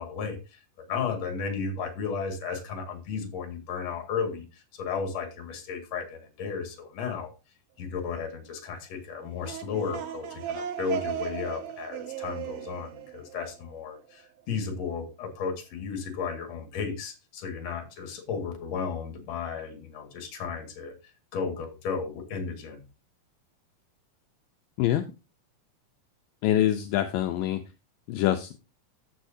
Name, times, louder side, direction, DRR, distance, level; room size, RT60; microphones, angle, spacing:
voice 1, 0.0-7.3 7.8-22.8, left 5 dB, 55° left, 2.9 m, -34 dB
sound 1, 9.2-14.0, right 9 dB, 90° right, 3.0 m, -36 dB
voice 2, 26.4-27.6 28.1-28.6, left 12 dB, 80° left, 2.3 m, -25 dB
14.0 x 6.3 x 2.7 m
omnidirectional pair, 4.0 m